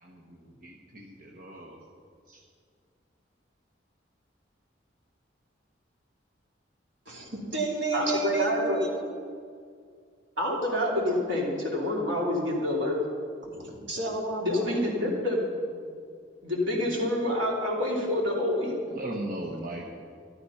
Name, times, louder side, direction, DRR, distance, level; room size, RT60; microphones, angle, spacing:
voice 1, 0.0-1.8 2.3-2.4 18.9-19.9, right 1 dB, 45° right, -2 dB, 1.3 m, -38 dB
voice 2, 7.1-9.1 13.5-14.9, right 2 dB, 70° right, -3 dB, 3.1 m, -31 dB
voice 3, 7.9-8.8 10.4-13.0 14.4-15.4 16.4-18.7, left 1 dB, 90° right, -2 dB, 3.2 m, -27 dB
13.0 x 12.5 x 5.7 m, 2.2 s
head